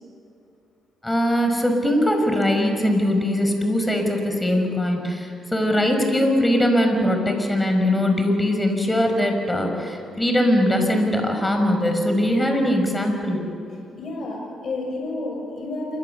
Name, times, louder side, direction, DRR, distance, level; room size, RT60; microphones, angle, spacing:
voice 1, 1.0-13.4, left 1 dB, 10° left, 4 dB, 5.7 m, -21 dB
voice 2, 14.0-16.0, left 2 dB, 55° left, 0 dB, 6.7 m, -30 dB
27.5 x 24.0 x 7.1 m, 2.7 s
cardioid pair, 90°, 0 cm